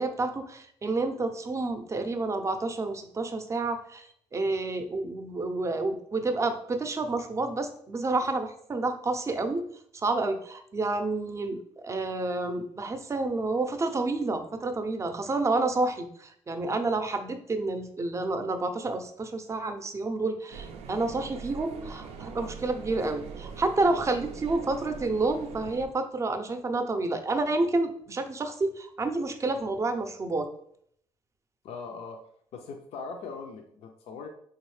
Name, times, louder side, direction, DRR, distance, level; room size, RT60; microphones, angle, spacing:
voice 1, 0.0-4.1 4.3-9.7 10.0-30.5, right 3 dB, 30° right, 7 dB, 0.5 m, -29 dB
sound 1, 20.5-25.9, right 5 dB, 85° right, 0.4 m, -42 dB
voice 2, 31.6-32.2 32.5-34.3, left 4 dB, 75° left, 3 dB, 0.4 m, -40 dB
3.7 x 2.7 x 3.1 m, 0.67 s
cardioid pair, 80°, 11 cm